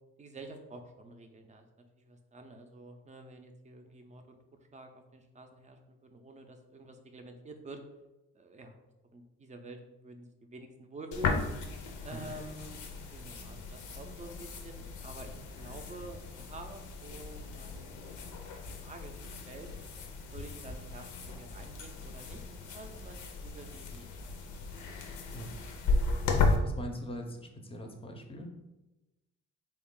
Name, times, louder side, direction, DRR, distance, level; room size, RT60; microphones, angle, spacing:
voice 1, 0.2-1.7 2.0-4.4 4.7-7.8 8.3-8.7 9.1-11.4 12.0-12.8 13.1-18.5 18.8-19.7 20.3-22.4 22.7-24.4, right 2 dB, 25° right, 5 dB, 0.5 m, -48 dB
sound 1, 11.1-26.6, left 3 dB, 75° left, 0.6 m, -35 dB
voice 2, 26.3-28.6, equal, 20° left, 3 dB, 0.6 m, -42 dB
3.5 x 2.4 x 3.7 m, 1.0 s
cardioid pair, 90°, 30 cm